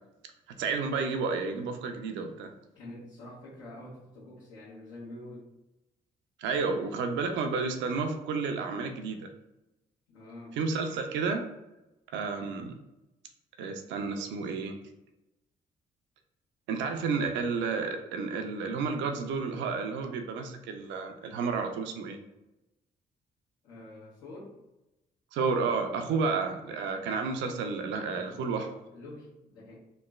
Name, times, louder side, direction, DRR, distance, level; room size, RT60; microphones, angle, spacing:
voice 1, 0.6-2.5 6.4-9.3 10.6-11.5 12.1-12.8 13.6-14.8 16.7-22.2 25.3-28.7, right 4 dB, 70° right, 6 dB, 0.4 m, -31 dB
voice 2, 2.7-5.5 10.1-10.6 23.6-24.6 26.1-26.4 28.0-29.8, left 1 dB, 75° left, -11 dB, 1.1 m, -47 dB
3.0 x 2.1 x 2.3 m, 0.96 s
hypercardioid pair, 50°, 19 cm